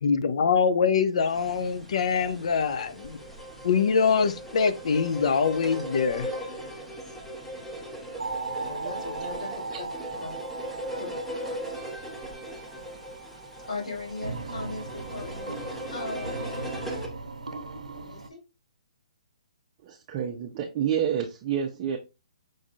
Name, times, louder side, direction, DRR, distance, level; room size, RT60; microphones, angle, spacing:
voice 1, 0.0-3.2 3.6-6.3, left 6 dB, 60° left, 0.6 m, -24 dB
sound 1, 1.2-17.1, equal, 5° left, 0.8 m, -39 dB
voice 2, 6.5-6.9 8.6-10.4 11.0-11.1 13.7-15.6 15.9-16.7 18.0-18.4, left 2 dB, 85° left, 2.7 m, -39 dB
sound 2, 8.2-18.3, right 3 dB, 90° right, 0.6 m, -38 dB
voice 3, 19.8-22.0, right 9 dB, 35° right, 0.6 m, -28 dB
5.3 x 3.6 x 2.4 m
hypercardioid pair, 145°, 4 cm